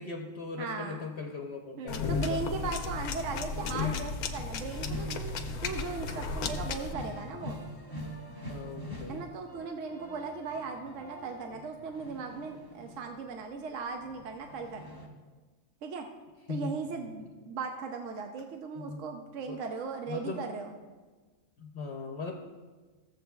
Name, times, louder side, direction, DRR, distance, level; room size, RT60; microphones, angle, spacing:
voice 1, 0.0-2.4 8.4-9.2 16.5-16.7 17.0-17.1 18.9-19.1 19.5-19.6 20.1-20.5 21.6-22.3, left 4 dB, 55° left, 1 dB, 0.9 m, -39 dB
voice 2, 0.6-1.0 1.8-7.6 9.1-14.9 15.8-16.1 16.5-20.7, right 4 dB, 65° right, 4 dB, 1.0 m, -38 dB
sound 1, 1.9-6.9, left 5 dB, 90° left, 1.2 m, -34 dB
sound 2, 4.7-13.4 13.8-15.1, left 1 dB, 15° right, 1.0 m, -45 dB
15.5 x 7.4 x 2.3 m, 1.3 s
omnidirectional pair, 1.5 m